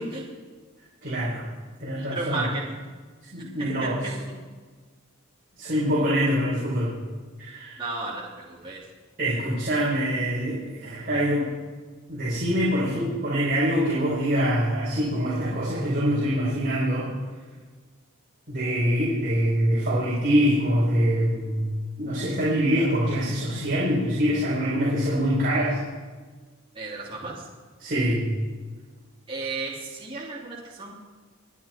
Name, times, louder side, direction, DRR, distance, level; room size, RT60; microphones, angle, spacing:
voice 1, 1.0-1.4 1.8-2.4 3.3-4.0 5.6-6.9 7.4-7.8 9.2-11.4 12.1-17.1 18.5-21.6 22.0-25.8 27.8-28.2, equal, 40° right, -7 dB, 4.5 m, -24 dB
voice 2, 2.1-2.8 3.8-3.9 7.8-8.8 26.7-27.5 29.3-31.0, right 3 dB, 25° right, -5 dB, 2.9 m, -33 dB
27.5 x 9.9 x 4.5 m, 1.4 s
head